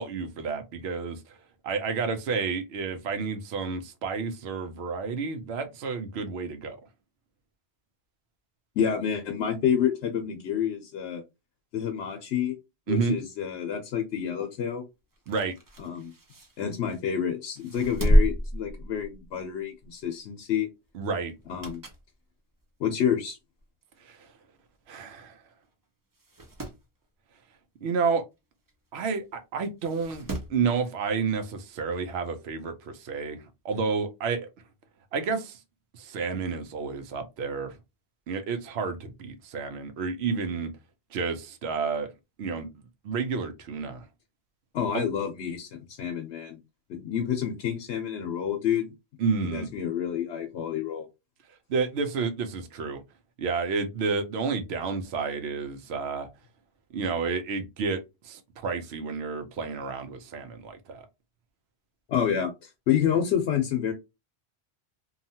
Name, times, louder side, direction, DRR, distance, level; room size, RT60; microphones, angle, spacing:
voice 1, 0.0-1.4 1.6-6.8 12.9-13.2 15.3-15.5 20.9-21.3 24.0-24.3 24.9-25.3 27.8-28.2 28.9-34.5 35.1-35.6 35.9-37.8 38.3-40.7 41.1-42.1 42.4-42.7 43.0-44.0 44.9-45.0 49.2-49.7 51.7-53.0 53.4-56.3 56.9-61.1, right 5 dB, 75° right, 0.9 m, -30 dB
voice 2, 8.8-11.2 11.7-12.5 12.9-14.8 15.8-16.1 16.6-20.7 21.5-21.8 22.8-23.4 44.7-46.6 46.9-48.9 49.4-51.1 62.1-63.9, left 8 dB, 80° left, 0.9 m, -28 dB
sound 1, 15.1-17.1 17.6-19.4 19.8-20.0 21.3-22.1 22.6-22.7 23.6-23.7 23.9-24.0 24.2-24.3 25.2-25.3 25.7-25.8 26.1-26.8 28.7-28.8 29.8-30.6 31.9-32.0, equal, 30° right, 0.4 m, -28 dB
2.8 x 2.4 x 2.7 m
omnidirectional pair, 1.1 m